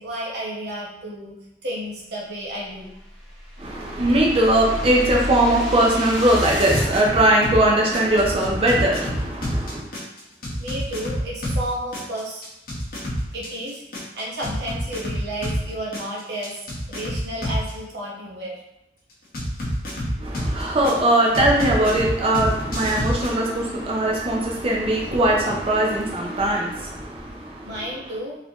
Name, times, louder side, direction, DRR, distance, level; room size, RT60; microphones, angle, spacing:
voice 1, 0.0-1.4 1.6-2.9 10.6-12.4 13.3-18.6 27.6-28.4, right 1 dB, 65° right, -4 dB, 1.1 m, -32 dB
sound 1, 2.8-6.9, equal, ahead, 1.2 m, -31 dB
voice 2, 3.6-9.8 20.2-27.7, right 1 dB, 35° right, -2 dB, 0.5 m, -20 dB
sound 2, 6.4-7.6 7.9-11.6 11.9-15.6 15.9-17.7 19.3-20.9 21.3-23.3, equal, 55° left, 1.0 m, -27 dB
4.0 x 2.7 x 2.9 m, 0.88 s
head